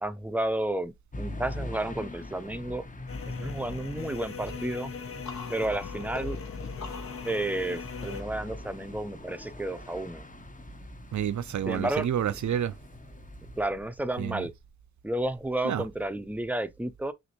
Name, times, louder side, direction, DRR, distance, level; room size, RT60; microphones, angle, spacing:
voice 1, 0.0-2.9 3.4-4.9 5.5-6.4 7.2-10.3 11.7-12.1 13.6-14.5 15.0-17.1, right 1 dB, 5° right, 0.5 m, -31 dB
sound 1, 1.1-13.7, left 2 dB, 25° left, 0.8 m, -43 dB
sound 2, 3.1-8.2, left 6 dB, 50° left, 0.5 m, -40 dB
sound 3, 4.4-10.0, left 3 dB, 70° left, 1.3 m, -46 dB
voice 2, 11.1-12.7 14.2-14.4 15.6-15.8, right 9 dB, 80° right, 0.4 m, -29 dB
6.1 x 2.6 x 2.8 m
wide cardioid pair, 55°, 29 cm